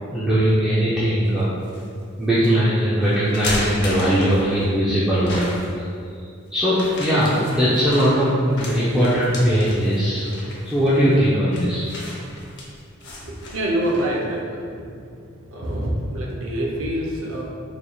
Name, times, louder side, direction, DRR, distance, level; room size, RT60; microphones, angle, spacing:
voice 1, 0.1-1.5 2.2-5.4 6.5-10.3 10.7-11.9, equal, 5° right, -11 dB, 0.4 m, -19 dB
sound 1, 1.2-1.9 2.4-2.5 3.1-4.7 5.2-5.8 6.7-14.2, left 1 dB, 55° left, 0.6 m, -34 dB
voice 2, 13.0-15.0 15.5-17.4, right 1 dB, 75° right, -2 dB, 0.6 m, -26 dB
4.0 x 3.2 x 2.3 m, 2.3 s
head